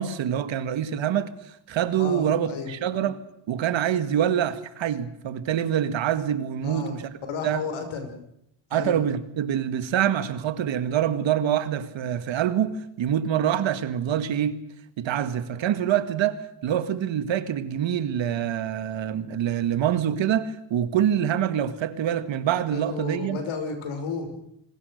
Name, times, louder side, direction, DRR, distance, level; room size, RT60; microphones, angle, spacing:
voice 1, 0.0-1.3 1.7-3.2 3.5-7.0 7.4-7.6 8.7-14.6 15.0-23.4, right 10 dB, 70° right, 1.9 m, -25 dB
voice 2, 1.9-2.7 6.6-6.9 7.3-8.1 8.7-9.0 22.7-24.4, left 4 dB, 80° left, 5.9 m, -32 dB
26.5 x 20.0 x 6.6 m
cardioid pair, 85°, 48 cm